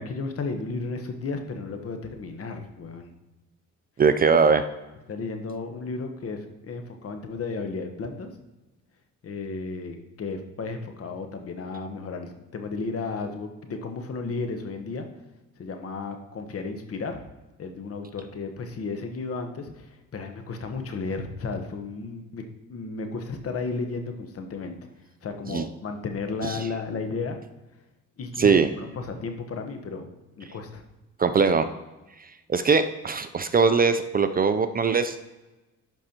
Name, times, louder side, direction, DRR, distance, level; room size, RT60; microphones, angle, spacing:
voice 1, 0.0-3.1 5.1-8.3 9.2-15.1 15.6-17.2 17.6-24.8 25.2-27.4 28.2-30.1 30.4-30.8, left 4 dB, 50° left, 6 dB, 1.1 m, -33 dB
voice 2, 4.0-4.6 25.5-25.7 26.4-26.6 28.4-28.7 31.2-31.7 32.2-35.2, right 5 dB, 30° right, 10 dB, 0.4 m, -21 dB
11.5 x 5.4 x 2.9 m, 1.1 s
cardioid pair, 90°, 30 cm